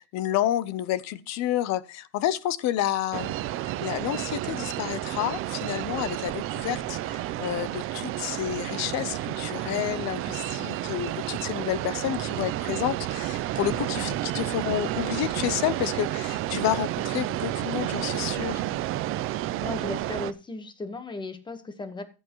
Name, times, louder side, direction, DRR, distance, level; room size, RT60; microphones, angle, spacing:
voice 1, 0.0-3.3 3.8-18.7, left 12 dB, 40° left, 0.7 m, -30 dB
sound 1, 3.1-20.3, right 14 dB, 30° right, 0.4 m, -31 dB
voice 2, 19.6-22.0, left 2 dB, 10° left, 1.1 m, -36 dB
15.5 x 8.2 x 3.0 m
cardioid pair, 165°, 44 cm